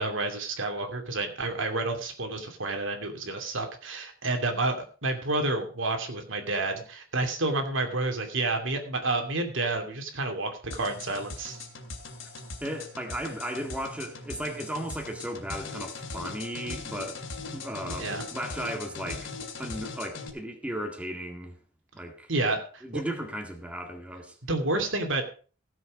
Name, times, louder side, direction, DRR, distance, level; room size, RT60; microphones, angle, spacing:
voice 1, 0.0-4.8 5.0-11.6 18.0-18.2 22.3-22.8 24.5-25.2, right 2 dB, 70° right, 2.6 m, -29 dB
sound 1, 10.7-20.3, left 3 dB, 70° left, 2.9 m, -40 dB
voice 2, 12.6-17.2 17.5-19.3 19.6-21.6 21.9-22.3 22.8-24.4, equal, 5° right, 1.8 m, -35 dB
16.0 x 7.7 x 5.1 m
head